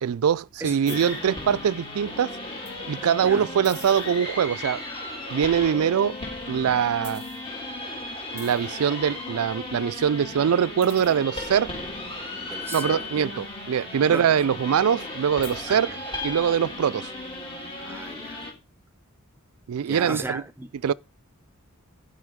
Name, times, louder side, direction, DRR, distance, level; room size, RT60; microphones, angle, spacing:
voice 1, 0.0-2.4 2.9-4.8 5.3-6.2 6.5-7.3 8.3-11.7 12.7-16.0 16.2-17.1 19.7-20.4 20.8-20.9, right 8 dB, 90° right, 0.4 m, -23 dB
voice 2, 0.6-1.0 3.2-3.5 12.4-13.3 14.1-14.3 15.7-15.8 17.8-18.5 19.8-20.9, right 2 dB, 10° right, 0.7 m, -36 dB
sound 1, 0.9-18.5, left 2 dB, 25° left, 3.1 m, -36 dB
12.0 x 5.6 x 3.6 m
head